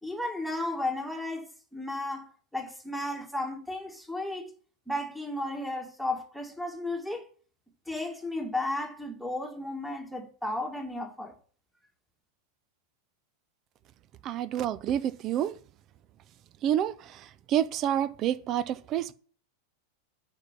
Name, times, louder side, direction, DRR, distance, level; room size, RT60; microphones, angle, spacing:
voice 1, 0.0-4.5 4.9-7.2 7.9-11.3, left 1 dB, ahead, 2.1 m, -34 dB
voice 2, 14.2-15.5 16.6-16.9 17.5-19.1, right 10 dB, 35° right, 0.7 m, -28 dB
8.9 x 5.5 x 7.4 m
figure-of-eight pair, 90°, 0 cm